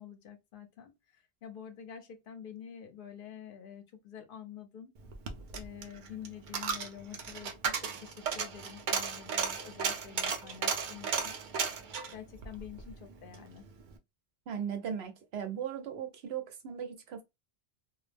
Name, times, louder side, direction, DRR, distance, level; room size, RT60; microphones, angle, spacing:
voice 1, 0.0-4.9 5.5-11.4 12.1-13.6, left 8 dB, 65° left, 0.7 m, -48 dB
Coin (dropping), 5.0-13.5 13.8-13.9, right 6 dB, 60° right, 0.6 m, -35 dB
voice 2, 14.5-17.2, right 8 dB, 85° right, 0.9 m, -37 dB
2.3 x 2.0 x 3.2 m
omnidirectional pair, 1.0 m